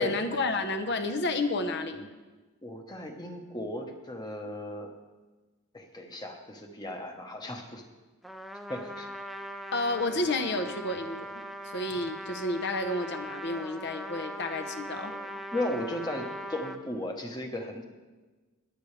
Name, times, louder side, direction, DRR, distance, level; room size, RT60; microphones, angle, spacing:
voice 1, 0.0-2.1 9.7-11.3 11.6-15.1, left 2 dB, 50° left, 7 dB, 0.9 m, -30 dB
voice 2, 2.6-4.9 5.7-7.8 8.7-9.1 15.0-17.8, left 1 dB, 20° left, 3 dB, 1.1 m, -36 dB
Trumpet, 8.2-16.8, equal, ahead, 0.5 m, -40 dB
21.5 x 8.6 x 3.3 m, 1.2 s
head